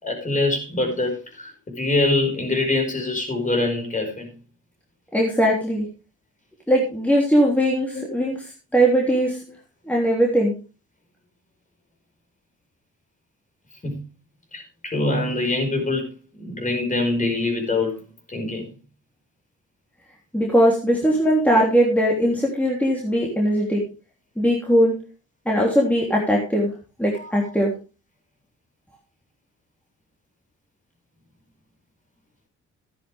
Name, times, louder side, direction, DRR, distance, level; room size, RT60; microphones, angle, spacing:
voice 1, 0.0-4.3 7.4-7.5 7.9-8.0 13.8-14.0 14.5-18.0 18.3-18.7 27.2-27.5, left 2 dB, 25° left, 5.3 m, -24 dB
voice 2, 5.1-5.8 6.7-8.4 8.7-9.4 9.9-10.5 20.3-23.8 24.4-25.0 25.4-26.7 27.0-27.7, equal, 5° left, 3.3 m, -20 dB
13.0 x 10.0 x 3.5 m
cardioid pair, 90°, 30 cm